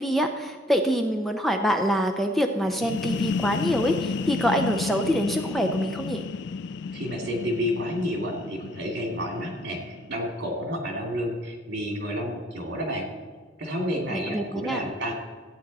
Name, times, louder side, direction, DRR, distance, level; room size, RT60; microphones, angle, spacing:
voice 1, 0.0-6.2 14.1-14.8, equal, ahead, 4 dB, 0.6 m, -25 dB
sound 1, 2.7-10.3, left 5 dB, 65° left, 0.3 m, -32 dB
voice 2, 6.9-13.1 13.6-15.1, equal, 60° right, 1 dB, 2.5 m, -30 dB
14.5 x 9.0 x 4.2 m, 1.5 s
head